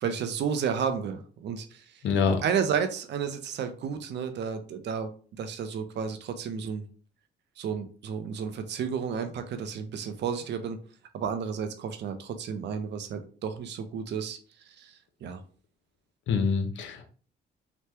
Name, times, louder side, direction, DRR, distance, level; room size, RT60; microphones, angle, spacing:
voice 1, 0.0-2.0 2.4-5.1 5.4-6.8 7.6-10.8 11.1-14.4 14.7-14.9 15.2-15.4, right 7 dB, 60° right, 8 dB, 0.5 m, -32 dB
voice 2, 2.0-2.4 16.3-17.1, left 5 dB, 70° left, 6 dB, 0.7 m, -25 dB
2.9 x 2.1 x 3.3 m, 0.41 s
cardioid pair, 90°, 20 cm